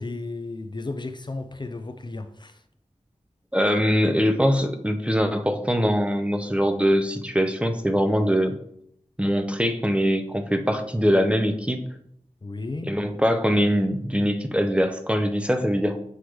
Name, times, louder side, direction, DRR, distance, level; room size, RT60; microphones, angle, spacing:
voice 1, 0.0-2.6 12.4-12.9, left 2 dB, 40° left, 8 dB, 0.5 m, -34 dB
voice 2, 3.5-8.6 9.2-11.8 12.8-16.0, equal, 10° right, 6 dB, 0.6 m, -22 dB
7.8 x 4.9 x 3.1 m, 0.72 s
wide cardioid pair, 75°, 12 cm